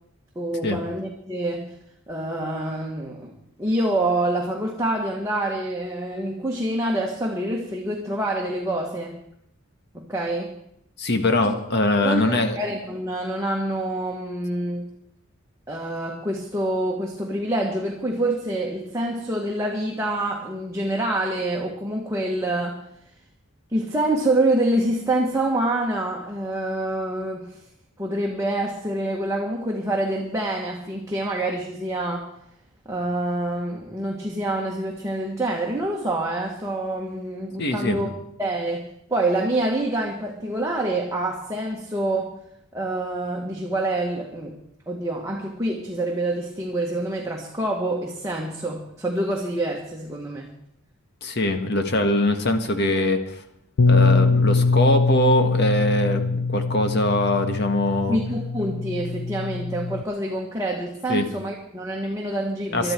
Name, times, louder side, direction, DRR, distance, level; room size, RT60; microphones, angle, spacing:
voice 1, 0.3-1.7 2.1-3.3 3.6-9.2 9.9-10.5 11.4-11.5 12.0-14.9 15.7-22.8 23.7-27.6 28.0-32.3 32.8-38.1 38.4-42.3 42.7-44.6 44.9-50.5 58.1-62.9, right 1 dB, 15° right, -1 dB, 1.6 m, -26 dB
voice 2, 11.0-12.6 37.6-38.0 51.2-53.4 53.9-58.2 61.1-61.3 62.7-62.9, left 1 dB, 50° left, 6 dB, 1.7 m, -22 dB
Bass guitar, 53.8-60.0, left 4 dB, 80° left, 0.5 m, -22 dB
22.0 x 12.0 x 4.6 m, 0.74 s
head